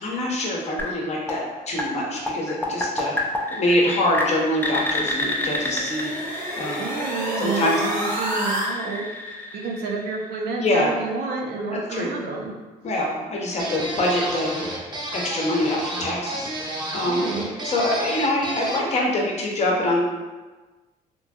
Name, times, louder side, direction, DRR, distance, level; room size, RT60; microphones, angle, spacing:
voice 1, 0.0-1.4 1.7-3.2 3.5-6.1 6.6-6.9 7.4-7.8 10.6-10.9 11.7-12.1 12.8-14.6 15.1-17.3 17.6-20.0, left 1 dB, 40° left, -2 dB, 0.7 m, -24 dB
sound 1, 0.8-10.6, left 1 dB, 10° left, 0.4 m, -30 dB
sound 2, 4.7-8.7, right 1 dB, 55° right, 0.9 m, -30 dB
voice 2, 6.8-12.5 17.0-17.6, right 4 dB, 70° right, 0 dB, 0.5 m, -30 dB
sound 3, 13.6-18.9, right 1 dB, 25° right, 0.6 m, -31 dB
3.0 x 2.6 x 2.3 m, 1.2 s
cardioid pair, 110°, 17 cm